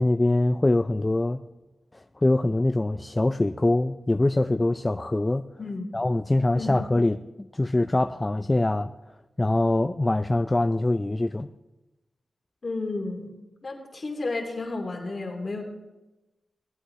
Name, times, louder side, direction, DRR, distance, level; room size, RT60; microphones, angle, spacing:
voice 1, 0.0-1.4 2.2-5.5 5.9-7.2 7.5-8.9 9.4-11.5, left 2 dB, 25° left, 9 dB, 0.3 m, -23 dB
voice 2, 5.6-5.9 6.5-6.8 12.6-13.3 13.6-15.6, left 3 dB, 50° left, 1 dB, 2.4 m, -32 dB
16.5 x 8.3 x 3.2 m, 1.1 s
cardioid pair, 55°, 0 cm